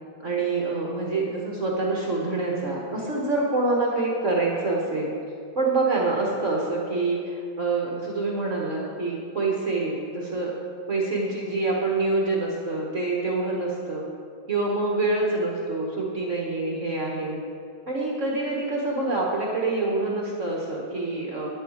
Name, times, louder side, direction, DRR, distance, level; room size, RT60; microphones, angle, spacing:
voice 1, 0.2-5.1 5.5-10.5 10.9-14.1 14.5-17.4 17.8-21.5, right 3 dB, 40° right, -3 dB, 1.6 m, -26 dB
11.0 x 9.9 x 5.0 m, 2.3 s
omnidirectional pair, 2.2 m